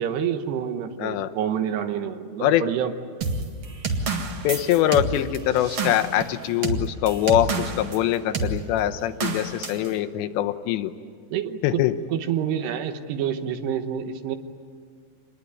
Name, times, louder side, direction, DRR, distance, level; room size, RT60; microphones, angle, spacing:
voice 1, 0.0-3.0 11.3-11.8 12.1-14.4, right 9 dB, 75° right, 8 dB, 3.1 m, -28 dB
voice 2, 1.0-1.3 2.4-2.6 4.4-10.9 11.6-11.9, left 12 dB, 85° left, 9 dB, 3.1 m, -23 dB
sound 1, 3.2-8.0 8.3-8.6 9.2-9.9, right 3 dB, 50° right, 1.6 m, -28 dB
27.0 x 21.0 x 9.7 m, 2.1 s
omnidirectional pair, 5.0 m